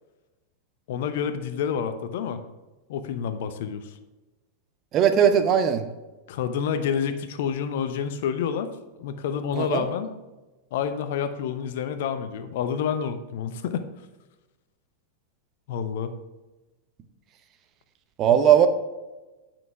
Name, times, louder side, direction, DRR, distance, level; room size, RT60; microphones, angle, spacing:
voice 1, 0.9-2.4 2.9-3.9 6.3-8.7 9.0-10.1 10.7-13.9 15.7-16.1, left 7 dB, 55° left, 9 dB, 0.8 m, -28 dB
voice 2, 4.9-5.8 9.5-9.8 18.2-18.7, right 9 dB, 35° right, 8 dB, 0.8 m, -19 dB
9.2 x 5.9 x 4.8 m, 1.1 s
figure-of-eight pair, 90°, 0 cm